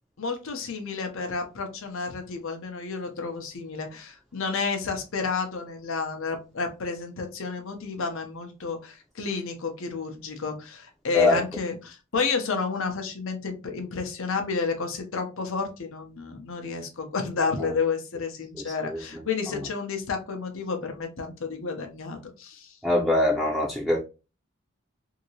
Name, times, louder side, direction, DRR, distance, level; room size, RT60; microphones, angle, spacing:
voice 1, 0.2-22.8, left 4 dB, 65° left, 0.7 m, -31 dB
voice 2, 22.8-24.0, left 1 dB, 5° right, 0.6 m, -22 dB
2.8 x 2.7 x 2.8 m
head